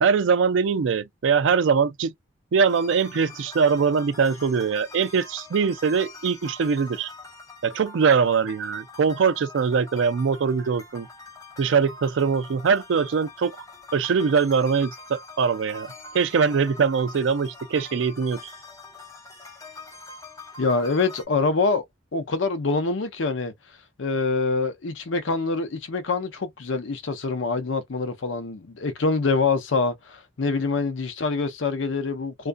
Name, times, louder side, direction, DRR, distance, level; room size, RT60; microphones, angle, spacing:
voice 1, 0.0-2.1 2.5-7.1 7.6-11.1 11.6-13.5 13.9-15.9 16.1-18.4, right 6 dB, 80° right, 0.4 m, -22 dB
sound 1, 2.7-21.2, left 3 dB, 15° left, 0.6 m, -44 dB
voice 2, 20.6-21.8 22.1-23.5 24.0-32.5, left 4 dB, 85° left, 0.6 m, -25 dB
2.4 x 2.3 x 2.5 m
head